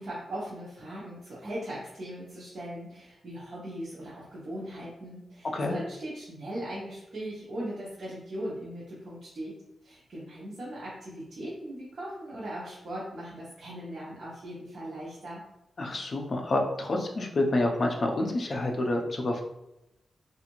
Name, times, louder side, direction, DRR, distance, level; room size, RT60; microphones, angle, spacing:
voice 1, 0.0-9.5 9.8-15.4, right 1 dB, 45° right, -8 dB, 0.7 m, -39 dB
voice 2, 15.8-19.4, left 2 dB, 40° left, 2 dB, 0.4 m, -28 dB
2.5 x 2.4 x 2.9 m, 0.88 s
wide cardioid pair, 155°, 0 cm